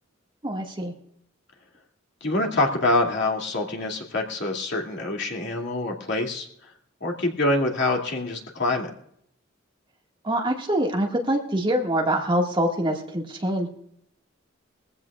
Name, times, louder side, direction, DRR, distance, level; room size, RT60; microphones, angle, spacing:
voice 1, 0.4-0.9 10.2-13.7, right 1 dB, 25° right, 0 dB, 1.9 m, -24 dB
voice 2, 2.2-6.7 7.0-8.9, left 2 dB, 60° left, 0 dB, 2.6 m, -25 dB
22.0 x 15.5 x 2.4 m, 0.70 s
head